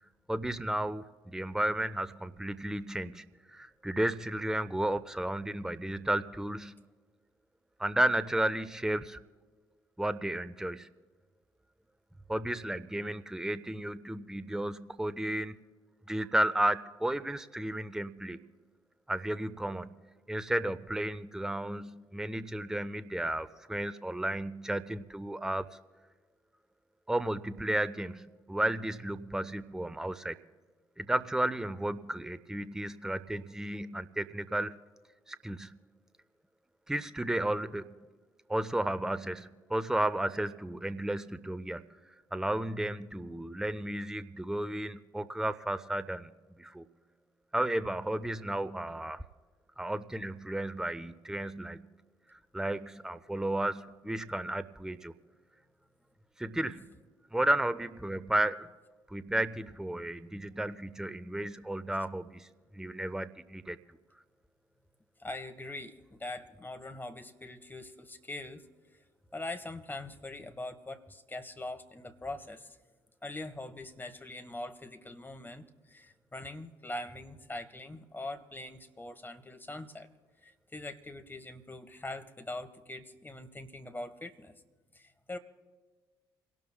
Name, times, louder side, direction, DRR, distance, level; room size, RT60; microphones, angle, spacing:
voice 1, 0.3-6.8 7.8-9.2 10.0-10.9 12.3-15.6 16.1-18.4 19.1-19.9 20.3-25.7 27.1-30.4 31.0-34.9 35.3-35.8 36.9-37.9 38.5-46.3 46.6-46.8 47.5-49.2 49.8-51.8 52.3-55.1 56.4-56.9 57.3-58.7 59.1-62.5 62.7-63.8, right 1 dB, 5° right, 12 dB, 0.6 m, -33 dB
voice 2, 65.2-68.6 69.3-72.8 73.2-80.1 80.4-84.5 84.9-85.4, left 2 dB, 15° left, 8 dB, 1.3 m, -42 dB
28.5 x 12.0 x 2.2 m, 1.4 s
figure-of-eight pair, 45°, 12 cm